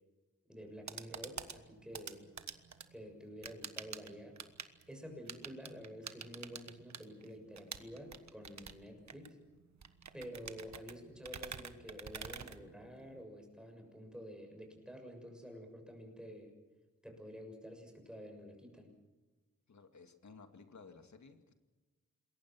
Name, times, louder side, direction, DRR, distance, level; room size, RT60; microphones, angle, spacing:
voice 1, 0.5-2.3 2.9-4.4 4.9-9.4 10.1-16.5 17.0-18.9, equal, 5° right, 3 dB, 6.7 m, -50 dB
sound 1, 0.6-13.2, right 6 dB, 70° right, 1.5 m, -49 dB
voice 2, 19.7-21.5, left 4 dB, 70° left, 6 dB, 2.5 m, -56 dB
27.5 x 22.0 x 6.2 m, 1.2 s
wide cardioid pair, 100°, 29 cm